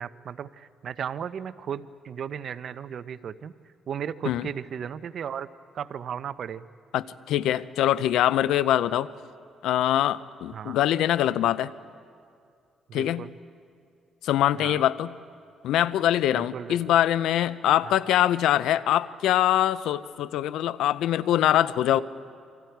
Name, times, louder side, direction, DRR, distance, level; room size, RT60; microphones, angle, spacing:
voice 1, 0.0-3.5 3.9-5.5 5.7-6.7 10.5-10.8 12.9-13.3 14.6-14.9 16.3-16.9 17.8-17.9, right 8 dB, 60° right, 13 dB, 0.7 m, -35 dB
voice 2, 6.9-9.1 9.6-11.7 12.9-13.2 14.2-15.1 15.6-22.0, left 12 dB, 85° left, 16 dB, 0.6 m, -23 dB
28.0 x 25.5 x 4.7 m, 2.3 s
cardioid pair, 90°, 0 cm